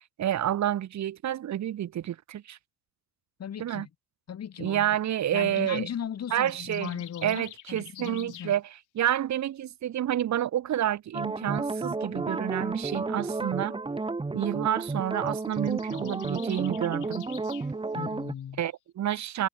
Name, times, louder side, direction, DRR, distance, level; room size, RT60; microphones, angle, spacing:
voice 1, 0.2-2.6 3.6-3.9 4.6-5.9 6.3-13.8 14.3-17.2 18.6-19.5, right 11 dB, 65° right, 1.9 m, -29 dB
voice 2, 3.4-3.9 4.3-4.9 5.3-8.5 17.9-18.6, left 9 dB, 55° left, 4.9 m, -37 dB
sound 1, 6.2-8.6 15.2-17.7, left 15 dB, 85° left, 6.0 m, -48 dB
sound 2, 11.1-18.3, right 3 dB, 15° right, 1.3 m, -32 dB
cardioid pair, 90°, 30 cm